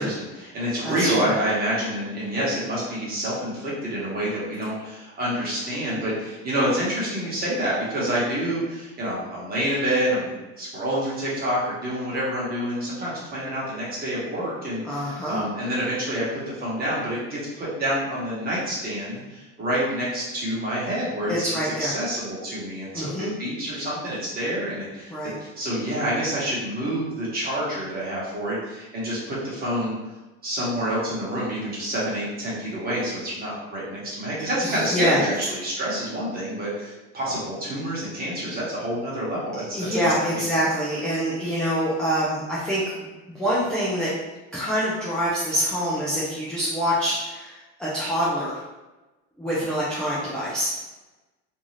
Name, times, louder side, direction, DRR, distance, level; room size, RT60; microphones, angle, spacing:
voice 1, 0.0-25.1 25.4-29.9 30.4-39.6 40.2-40.5, equal, 25° right, -7 dB, 1.2 m, -27 dB
voice 2, 0.8-1.3 14.8-15.4 21.3-21.9 22.9-23.3 25.1-25.3 34.6-35.2 39.7-42.8 43.3-44.1 44.5-48.6 49.4-50.7, equal, ahead, -9 dB, 0.3 m, -25 dB
2.7 x 2.3 x 3.1 m, 1.1 s
supercardioid pair, 135°, 37 cm